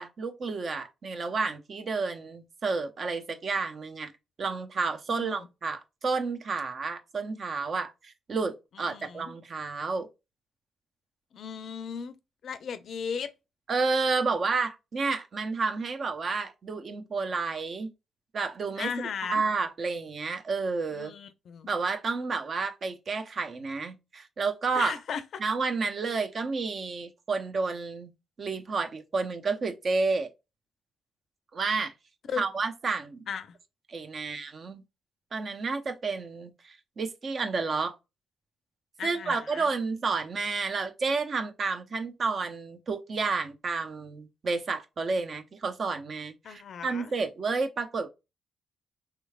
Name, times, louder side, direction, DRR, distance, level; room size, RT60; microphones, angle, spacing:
voice 1, 0.0-4.1 4.4-10.1 13.7-17.9 18.3-18.9 19.3-21.1 21.7-24.9 25.4-28.1 28.4-30.3 31.5-31.9 32.4-33.2 33.9-34.8 35.3-38.0 39.0-48.1, right 4 dB, 50° right, 0.7 m, -30 dB
voice 2, 5.1-5.5 8.8-9.3 11.3-12.1 12.4-13.3 18.8-19.4 20.9-21.7 24.7-25.2 32.3-32.4 33.3-33.6 39.0-39.7 46.4-47.1, left 6 dB, 60° left, 0.4 m, -36 dB
3.4 x 3.0 x 2.3 m
hypercardioid pair, 40°, 0 cm